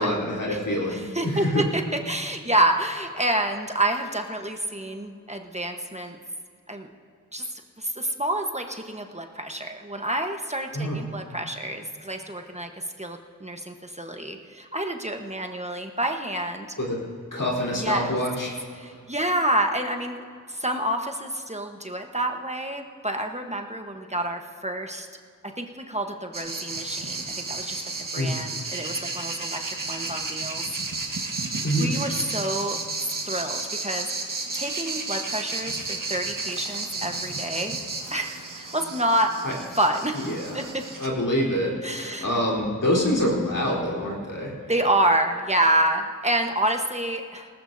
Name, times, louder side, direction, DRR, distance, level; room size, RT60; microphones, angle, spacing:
voice 1, 0.0-1.6 10.7-11.0 16.8-17.0 17.3-18.5 28.2-28.3 31.6-32.0 39.4-39.5 40.1-40.6 41.0-44.5, equal, 75° left, -4 dB, 3.8 m, -26 dB
voice 2, 0.9-6.2 6.7-6.9 7.3-12.7 13.0-16.7 17.7-18.1 18.8-25.1 25.6-27.8 28.1-30.7 31.0-31.1 31.7-34.1 34.5-37.8 38.1-39.3 39.8-40.2 40.5-40.8 41.8-42.3 44.7-47.5, right 1 dB, 20° right, 4 dB, 1.1 m, -28 dB
sound 1, 26.3-41.1, right 3 dB, 80° right, 1.5 m, -32 dB
19.0 x 18.5 x 2.7 m, 2.2 s
wide cardioid pair, 45°, 32 cm